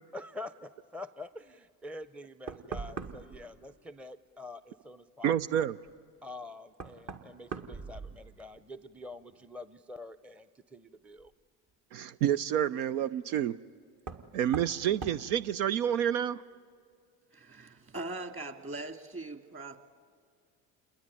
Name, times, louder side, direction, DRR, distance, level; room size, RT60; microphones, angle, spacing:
voice 1, 0.1-5.6 6.2-11.3, left 2 dB, 5° right, 13 dB, 0.6 m, -46 dB
Knock, 2.0-2.1 2.5-3.4 5.9-6.0 6.7-8.6 8.9-9.5 11.2-11.3 14.0-14.3 14.5-14.8 15.0-15.2, right 5 dB, 50° right, 2.1 m, -41 dB
voice 2, 5.2-5.8 11.9-13.6 14.3-16.4, right 10 dB, 75° right, 14 dB, 0.6 m, -29 dB
voice 3, 17.3-19.8, right 2 dB, 30° right, 7 dB, 2.4 m, -41 dB
28.0 x 21.0 x 9.8 m, 2.1 s
hypercardioid pair, 75°, 43 cm